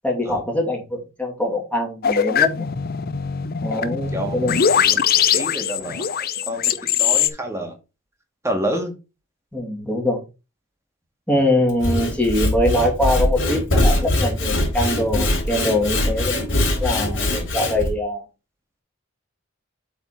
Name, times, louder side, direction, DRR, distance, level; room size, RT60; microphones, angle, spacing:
voice 1, 0.0-2.6 3.6-4.7 9.5-10.2 11.3-16.5 16.8-18.2, left 1 dB, 5° left, -1 dB, 2.6 m, -23 dB
sound 1, 2.0-7.3, left 8 dB, 50° left, 0.6 m, -21 dB
voice 2, 3.7-4.4 4.7-5.0 5.3-6.2 6.5-6.7 7.0-7.7 8.4-8.9 17.3-17.5, right 1 dB, 15° right, 3 dB, 1.9 m, -28 dB
Sawing / Wood, 11.7-17.9, left 1 dB, 65° left, 3.7 m, -22 dB
8.1 x 4.3 x 4.3 m, 0.29 s
head